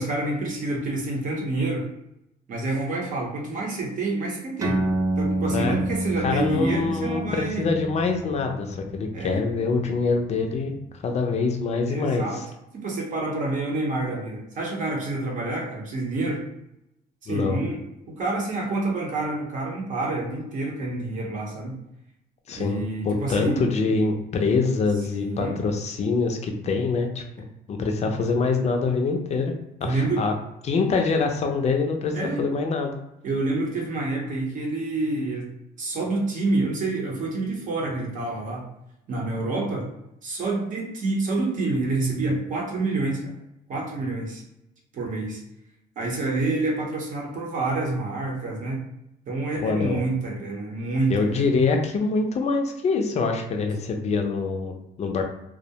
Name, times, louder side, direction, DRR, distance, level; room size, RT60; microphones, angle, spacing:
voice 1, 0.0-1.8 2.5-4.8 5.2-7.7 9.1-9.4 11.9-12.4 12.7-16.4 17.2-17.8 18.1-21.7 22.5-23.9 25.1-25.6 29.8-30.2 32.1-32.4 33.2-35.5 35.8-38.7 39.1-39.9 40.2-43.3 43.7-44.4 44.9-45.4 46.0-48.8 49.3-51.4, right 2 dB, 50° right, -1 dB, 0.8 m, -28 dB
sound 1, 4.6-11.5, right 1 dB, 20° right, 0.4 m, -30 dB
voice 2, 6.2-10.7 11.0-12.2 17.3-17.6 22.5-29.5 29.8-30.3 30.6-32.9 49.6-50.0 51.1-55.2, left 4 dB, 40° left, 3 dB, 0.5 m, -25 dB
2.3 x 2.1 x 2.8 m, 0.84 s
cardioid pair, 110°, 17 cm